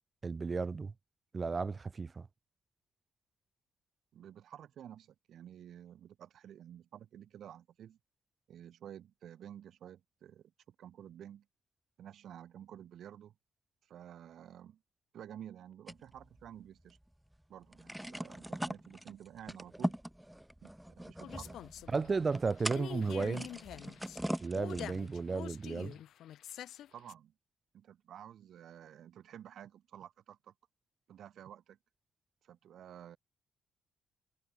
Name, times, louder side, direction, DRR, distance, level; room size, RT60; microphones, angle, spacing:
voice 1, 0.2-0.9 1.3-2.3 21.9-23.5 24.4-26.0, right 4 dB, 25° right, 2.5 m, -34 dB
voice 2, 4.1-8.0 8.5-11.5 12.0-13.3 13.8-14.8 15.1-17.0 17.5-20.0 20.6-21.6 22.1-22.3 26.9-27.3 27.7-30.5 31.1-31.8 32.4-33.2, right 10 dB, 65° right, 4.0 m, -51 dB
bucket of windup racecars, 15.9-17.0 17.3-17.4 17.7-25.2, equal, 5° right, 1.5 m, -41 dB
sound 1, 21.2-27.1, left 11 dB, 75° left, 1.4 m, -46 dB
cardioid pair, 155°, 0 cm